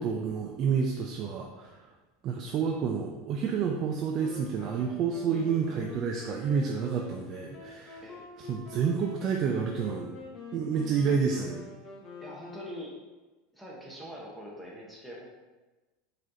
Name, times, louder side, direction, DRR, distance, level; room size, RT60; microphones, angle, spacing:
voice 1, 0.0-1.9 2.2-8.0 8.4-10.1 10.5-11.6, right 6 dB, 45° right, 1 dB, 0.4 m, -29 dB
Wind instrument woodwind instrument, 4.1-13.2, left 3 dB, 45° left, 0.9 m, -46 dB
voice 2, 12.2-13.0 13.5-15.2, equal, ahead, -4 dB, 1.0 m, -43 dB
4.9 x 3.8 x 2.8 m, 1.2 s
supercardioid pair, 110°, 0 cm